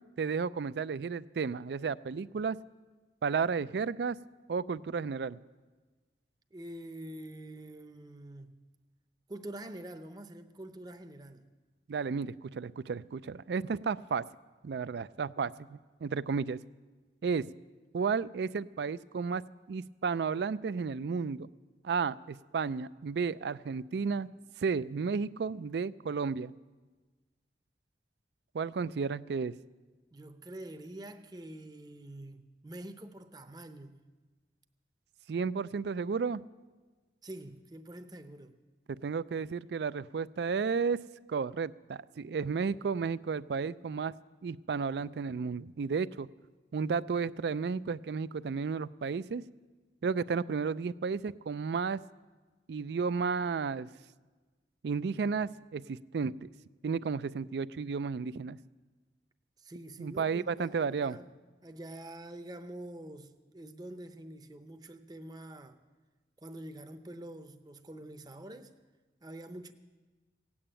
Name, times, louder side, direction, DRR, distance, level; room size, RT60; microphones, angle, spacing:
voice 1, 0.2-2.6 3.2-4.2 4.5-5.4 11.9-14.2 14.6-16.6 17.2-17.5 17.9-19.4 19.7-21.5 21.8-24.3 24.6-26.5 28.5-29.5 35.3-36.4 38.9-41.0 41.3-44.1 44.4-46.3 46.7-49.4 50.0-52.0 52.7-53.9 54.8-56.5 56.8-58.6 60.0-61.2, right 5 dB, 70° right, 0.4 m, -33 dB
voice 2, 6.5-8.7 9.3-11.5 28.9-29.0 30.1-34.0 37.2-38.6 59.6-61.3 61.6-65.8 66.4-68.7 69.2-69.7, right 1 dB, 20° right, 0.7 m, -46 dB
17.0 x 8.6 x 8.8 m
head